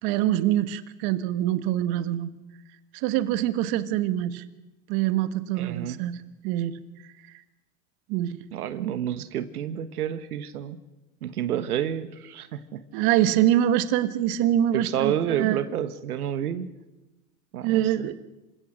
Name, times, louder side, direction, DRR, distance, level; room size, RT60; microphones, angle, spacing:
voice 1, 0.0-2.3 2.9-4.4 4.9-6.2 6.4-6.7 8.1-8.4 12.9-15.6 17.6-18.2, right 12 dB, 55° right, 11 dB, 1.6 m, -24 dB
voice 2, 5.6-6.0 8.5-10.8 11.2-12.8 13.1-13.2 14.7-16.7 17.5-18.1, right 10 dB, 90° right, 11 dB, 1.4 m, -29 dB
27.0 x 17.0 x 6.5 m, 1.0 s
hypercardioid pair, 105°, 44 cm